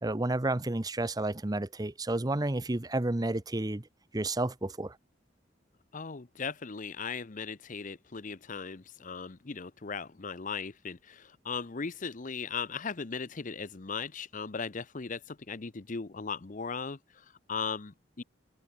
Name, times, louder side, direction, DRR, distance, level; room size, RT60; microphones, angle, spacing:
voice 1, 0.0-3.9 4.1-5.0, right 2 dB, 20° right, 0.8 m, -31 dB
voice 2, 5.9-18.2, left 5 dB, 40° left, 0.7 m, -38 dB
open air
head